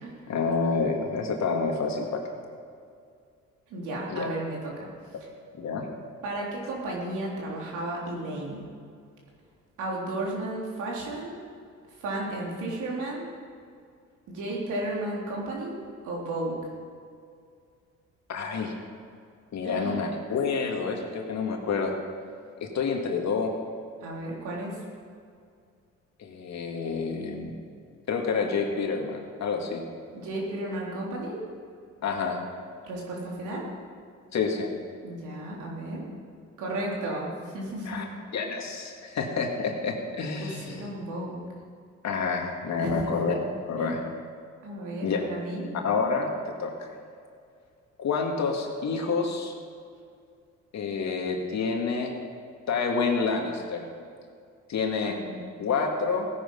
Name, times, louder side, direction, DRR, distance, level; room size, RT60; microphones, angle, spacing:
voice 1, 0.3-2.4 4.1-4.3 5.6-5.9 18.3-18.7 19.5-21.9 22.6-23.5 26.2-27.6 28.1-29.8 32.0-32.4 34.3-34.7 37.9-38.0 38.3-40.8 42.0-43.4 43.7-44.0 45.0-45.2 45.8-46.3 46.6-46.9 48.0-49.5 50.7-52.1 52.7-53.9 54.7-55.2 55.6-56.3, left 4 dB, 65° left, 2 dB, 2.3 m, -28 dB
voice 2, 3.7-4.9 6.2-8.6 9.8-11.4 12.0-13.3 14.3-15.7 16.0-16.6 19.6-20.0 24.0-24.8 30.1-31.4 32.8-33.7 35.0-36.1 36.6-38.0 38.4-38.5 40.4-41.4 42.8-43.3 43.8-44.0 44.6-45.7 55.0-55.5, right 1 dB, 85° right, -3 dB, 3.6 m, -33 dB
16.5 x 10.0 x 5.5 m, 2.3 s
cardioid pair, 90°, 30 cm